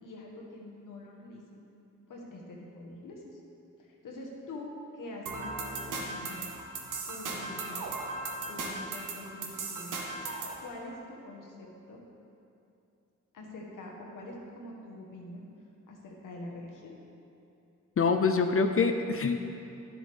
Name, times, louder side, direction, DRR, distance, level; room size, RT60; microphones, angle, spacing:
voice 1, 0.0-1.6 2.1-3.4 3.8-6.5 7.1-7.9 8.5-10.0 10.6-12.0 13.3-15.4 15.9-17.0, left 1 dB, 80° left, -1 dB, 1.3 m, -45 dB
sound 1, 5.3-10.6, right 3 dB, 80° right, 1.0 m, -37 dB
voice 2, 18.0-19.4, left 4 dB, 45° left, 6 dB, 0.5 m, -25 dB
10.0 x 7.1 x 3.5 m, 2.7 s
supercardioid pair, 45°, 32 cm